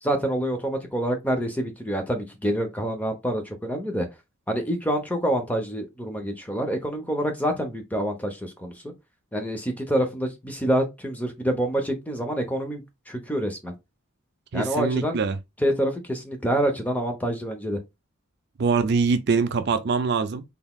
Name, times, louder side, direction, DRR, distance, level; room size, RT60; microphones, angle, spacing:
voice 1, 0.0-4.1 4.5-8.9 9.3-13.7 14.5-15.2 15.6-17.8, right 1 dB, 5° left, 0.7 m, -27 dB
voice 2, 14.5-15.4 18.6-20.4, right 5 dB, 50° right, 0.4 m, -23 dB
3.9 x 3.5 x 2.3 m
head